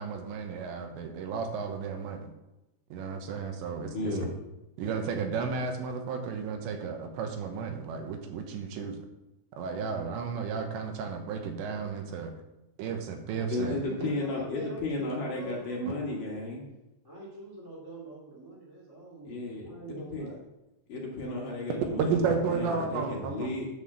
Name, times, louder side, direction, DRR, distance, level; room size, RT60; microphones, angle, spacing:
voice 1, 0.0-2.3 2.9-4.2 4.8-9.0 9.6-12.3 12.8-13.8 22.0-23.5, right 5 dB, 85° right, 5 dB, 3.3 m, -33 dB
voice 2, 3.9-4.4 13.5-16.6 19.2-20.3 20.9-23.7, left 2 dB, 55° left, -2 dB, 2.8 m, -34 dB
voice 3, 13.6-16.3 17.0-19.3 19.6-20.4, right 2 dB, 15° right, -5 dB, 0.7 m, -43 dB
9.7 x 4.2 x 7.2 m, 0.96 s
omnidirectional pair, 5.1 m